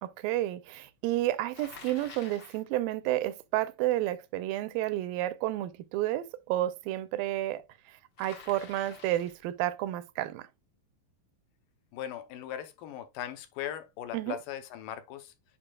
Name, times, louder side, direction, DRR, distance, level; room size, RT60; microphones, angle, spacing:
voice 1, 0.0-7.6 8.2-10.5 14.1-14.4, right 14 dB, 85° right, 2.3 m, -31 dB
Bicycle, 1.5-2.6 8.2-9.4, left 5 dB, 55° left, 1.3 m, -48 dB
voice 2, 11.9-15.3, left 11 dB, 75° left, 2.3 m, -39 dB
8.7 x 5.0 x 2.2 m
omnidirectional pair, 4.0 m